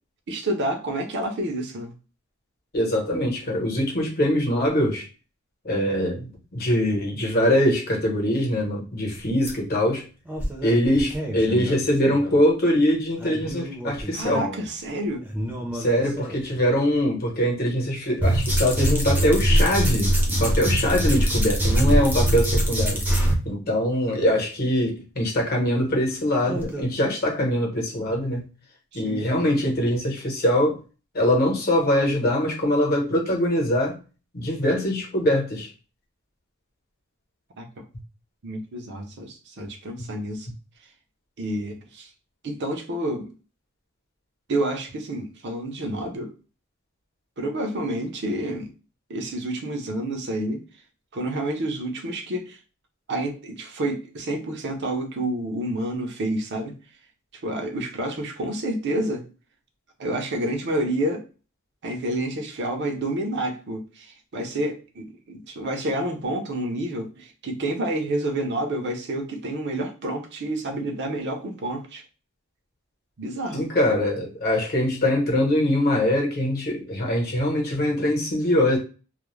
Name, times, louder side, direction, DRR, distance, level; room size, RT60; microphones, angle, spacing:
voice 1, 0.3-1.9 14.1-15.2 28.9-29.2 37.6-37.8 38.4-40.5 41.4-42.1 42.4-43.3 44.5-46.3 47.4-48.7 49.1-50.6 51.1-52.6 53.1-56.8 57.4-59.2 60.0-61.2 61.8-72.0 73.2-73.6, right 1 dB, 55° right, 0.5 m, -29 dB
voice 2, 2.7-5.0 5.6-10.0 10.6-14.4 15.7-23.0 23.4-28.5 28.9-30.8 31.1-33.9 34.3-35.7 73.5-78.8, left 1 dB, 45° left, 0.9 m, -23 dB
sound 1, 9.2-9.3 9.5-9.6 10.3-12.4 13.2-14.6 15.2-16.4 18.2-23.3 26.4-26.8, right 1 dB, 10° right, 0.6 m, -23 dB
2.3 x 2.0 x 3.0 m
head